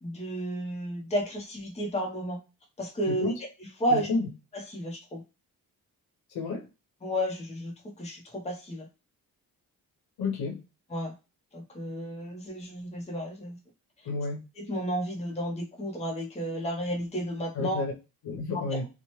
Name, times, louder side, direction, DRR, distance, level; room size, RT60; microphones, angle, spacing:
voice 1, 0.0-2.4 2.8-3.3 3.8-4.1 4.5-5.2 7.0-8.9 10.9-11.1 11.5-13.6 14.6-17.8, equal, 20° left, 0 dB, 0.7 m, -32 dB
voice 2, 3.9-4.3 6.3-6.6 10.2-10.6 14.0-14.4 17.5-17.9 18.2-18.9, left 3 dB, 85° left, 3 dB, 0.8 m, -30 dB
2.8 x 2.1 x 3.0 m, 0.29 s
cardioid pair, 75°, 36 cm